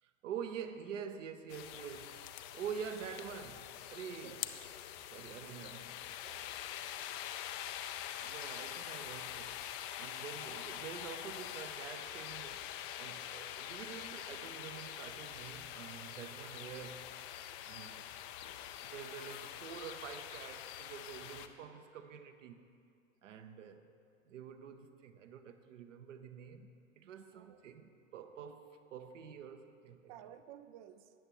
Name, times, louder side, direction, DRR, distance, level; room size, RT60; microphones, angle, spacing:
voice 1, 0.0-2.3 2.5-4.5 5.0-5.9 8.2-9.7 10.0-12.7 13.0-17.0 17.6-18.0 18.9-22.7 23.2-23.8 24.3-26.7 27.0-30.1, right 7 dB, 60° right, 7 dB, 0.9 m, -47 dB
sound 1, 1.5-21.5, left 11 dB, 30° left, 0.5 m, -45 dB
voice 2, 5.4-5.7 6.2-6.8 16.4-16.5 27.3-27.6 30.1-31.1, right 11 dB, 30° right, 12 dB, 0.4 m, -55 dB
17.5 x 10.5 x 3.0 m, 2.4 s
figure-of-eight pair, 95°, 41 cm